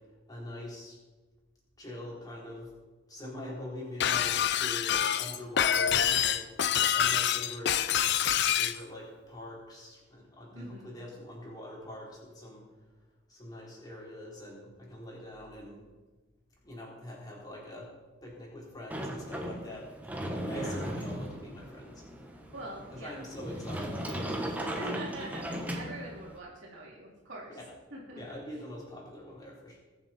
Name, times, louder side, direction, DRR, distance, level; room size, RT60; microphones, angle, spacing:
voice 1, 0.3-1.0 1.8-2.7 3.1-6.5 6.9-7.8 8.6-12.6 13.3-15.8 16.6-17.9 18.2-19.9 20.4-22.0 22.6-24.3 24.7-25.2 27.5-27.8 28.2-29.8, left 1 dB, 20° left, -4 dB, 4.0 m, -44 dB
Shatter, 4.0-8.8, left 9 dB, 60° left, 0.5 m, -26 dB
voice 2, 10.5-11.0 20.4-20.9 22.5-23.2 24.7-27.6 27.9-28.2, right 2 dB, 70° right, -4 dB, 3.1 m, -44 dB
Sliding door, 18.9-26.4, equal, 10° right, 1.4 m, -37 dB
21.5 x 7.3 x 4.4 m, 1.3 s
head